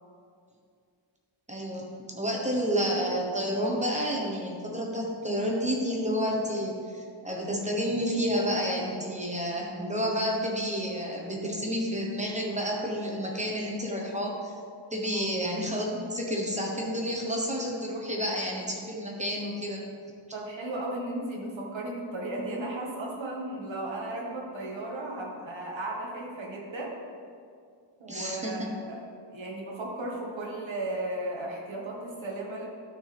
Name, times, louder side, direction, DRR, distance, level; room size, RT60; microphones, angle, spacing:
voice 1, 1.5-1.9 2.1-14.5 14.9-19.8 28.1-28.7, equal, 15° right, -1 dB, 1.2 m, -30 dB
voice 2, 20.3-27.0 28.0-29.0 29.3-32.7, right 1 dB, 65° right, -2 dB, 2.0 m, -35 dB
12.5 x 6.3 x 3.5 m, 2.2 s
wide cardioid pair, 155°, 49 cm